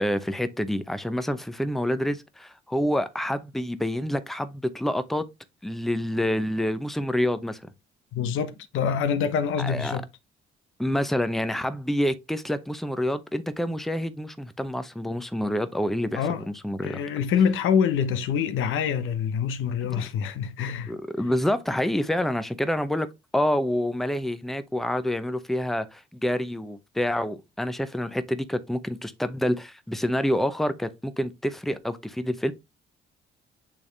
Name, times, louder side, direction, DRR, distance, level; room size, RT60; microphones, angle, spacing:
voice 1, 0.0-5.2 5.6-7.6 9.6-10.0 10.8-17.0 19.9-20.1 20.9-23.1 23.3-32.5, left 1 dB, ahead, 0.7 m, -27 dB
voice 2, 8.1-10.1 16.1-16.5 16.8-20.9, left 7 dB, 85° left, 0.9 m, -25 dB
8.6 x 3.5 x 3.2 m
cardioid pair, 90°, 20 cm